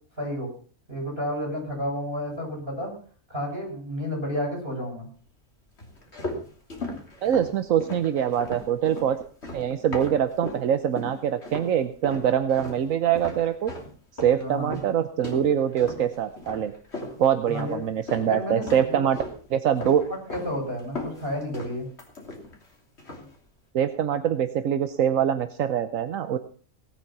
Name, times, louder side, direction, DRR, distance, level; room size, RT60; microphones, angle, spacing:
voice 1, 0.2-0.5 0.9-2.9 3.3-5.1 14.4-14.8 17.5-17.8 18.3-19.0 19.8-21.9, equal, 40° right, 0 dB, 7.8 m, -31 dB
sound 1, 5.8-10.7 11.0-11.7 12.0-18.3 18.6-19.4 19.8-20.5 20.8-22.7 23.0-23.3, left 2 dB, 50° left, 3.4 m, -37 dB
voice 2, 7.2-9.2 9.5-13.7 14.1-16.7 17.2-19.2 19.5-20.0 23.7-26.4, right 9 dB, 75° right, 10 dB, 1.2 m, -24 dB
18.0 x 8.9 x 5.9 m, 0.42 s
omnidirectional pair, 1.4 m